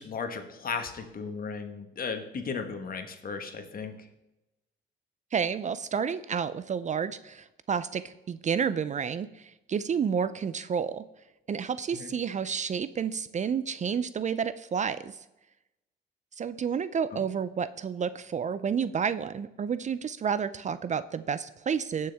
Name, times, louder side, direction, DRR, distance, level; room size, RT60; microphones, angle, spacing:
voice 1, 0.0-4.1 11.9-12.1 17.1-17.2, left 5 dB, 45° left, 7 dB, 1.4 m, -36 dB
voice 2, 5.3-11.0 11.5-15.2 16.4-22.1, right 7 dB, 35° right, 14 dB, 0.4 m, -30 dB
17.0 x 6.4 x 3.5 m, 0.96 s
cardioid pair, 90°, 20 cm